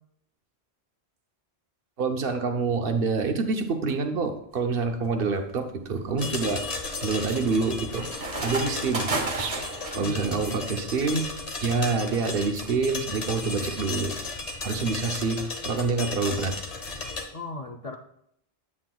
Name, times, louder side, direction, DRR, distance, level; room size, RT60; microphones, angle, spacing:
voice 1, 2.0-6.6 7.0-8.1 8.4-9.6 9.9-11.3 11.6-14.1 14.6-16.6, right 4 dB, 60° right, 6 dB, 0.9 m, -27 dB
sound 1, 4.6-4.9 5.5-10.1, right 2 dB, 35° right, 0.8 m, -33 dB
sound 2, 6.2-17.2, left 3 dB, 40° left, 0.9 m, -35 dB
voice 2, 10.0-10.7 17.3-18.0, left 2 dB, 55° left, 3 dB, 0.4 m, -38 dB
8.4 x 7.8 x 2.3 m, 0.75 s
omnidirectional pair, 1.1 m